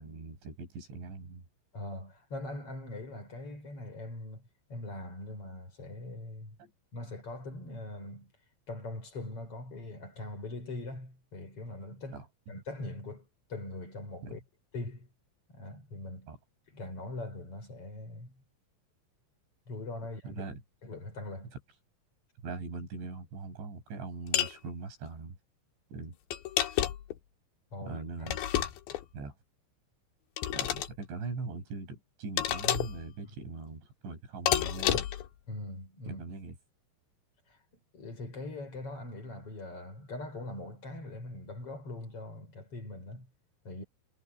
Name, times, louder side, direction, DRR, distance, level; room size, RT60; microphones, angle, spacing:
voice 1, 0.0-1.4 6.6-6.7 12.1-12.3 14.2-14.4 16.3-16.4 20.2-20.6 21.5-21.6 22.4-25.4 25.9-26.2 27.8-28.4 29.1-29.4 30.5-35.1 36.1-36.6, right 4 dB, 60° right, 8.9 m, -41 dB
voice 2, 1.7-6.6 6.9-8.3 8.7-14.4 14.7-15.1 15.5-16.3 16.7-18.4 19.7-20.4 20.8-21.5 27.7-28.3 35.5-36.2 37.5-37.6 37.9-43.3 43.6-43.8, left 2 dB, 25° left, 6.2 m, -42 dB
sound 1, 24.3-24.6 26.3-27.2 28.3-29.0 30.4-30.9 32.4-33.0 34.5-35.3, left 12 dB, 65° left, 3.5 m, -30 dB
omnidirectional pair, 6.0 m